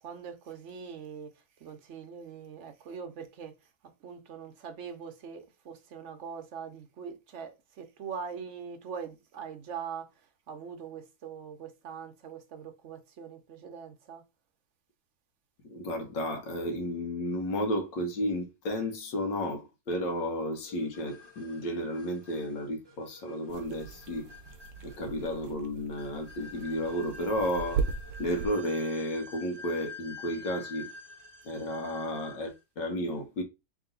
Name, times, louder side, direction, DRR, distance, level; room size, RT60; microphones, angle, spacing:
voice 1, 0.0-14.2, right 6 dB, 55° right, 0.8 m, -42 dB
voice 2, 15.7-24.3 24.8-27.8 28.2-30.9 31.4-33.4, equal, 85° left, 1.8 m, -32 dB
sound 1, 20.6-32.6, left 3 dB, 30° right, 0.4 m, -48 dB
sound 2, 23.5-28.5, right 6 dB, 75° right, 1.2 m, -38 dB
3.7 x 3.0 x 3.8 m
omnidirectional pair, 1.9 m